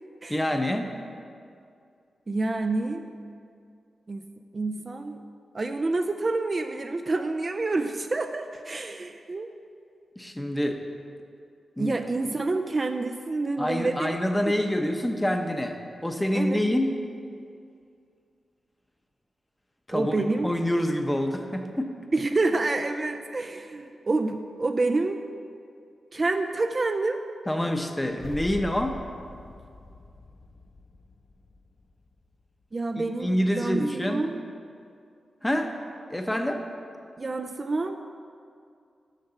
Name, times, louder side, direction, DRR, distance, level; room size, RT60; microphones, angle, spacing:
voice 1, 0.3-0.9 10.2-10.8 11.8-11.9 13.6-15.8 16.0-17.0 19.9-21.9 27.5-29.0 33.0-34.2 35.4-35.7 36.1-36.6, left 1 dB, 10° left, 4 dB, 0.7 m, -26 dB
voice 2, 2.3-3.2 4.1-4.2 4.5-5.2 5.5-9.5 11.8-14.2 16.3-16.6 19.9-20.5 22.1-25.2 26.1-27.2 32.7-34.4 37.2-38.0, right 3 dB, 35° right, 6 dB, 0.3 m, -28 dB
sound 1, 28.1-32.4, left 2 dB, 45° left, 0.4 m, -43 dB
6.6 x 5.9 x 5.6 m, 2.3 s
cardioid pair, 90°, 0 cm